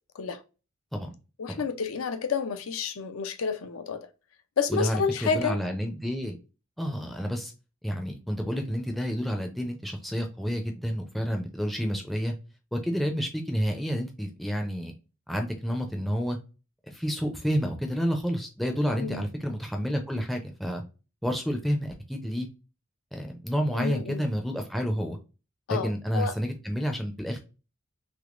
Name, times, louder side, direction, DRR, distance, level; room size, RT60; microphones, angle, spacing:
voice 1, 1.4-4.0 4.6-5.6 19.0-19.2 23.8-24.3 25.7-26.3, left 5 dB, 80° left, 0.5 m, -29 dB
voice 2, 4.7-6.4 6.8-7.5 7.8-12.3 12.7-14.9 15.3-16.4 16.9-20.8 21.2-22.5 23.1-25.2 25.7-27.4, equal, ahead, 0.4 m, -29 dB
3.5 x 3.0 x 2.4 m
head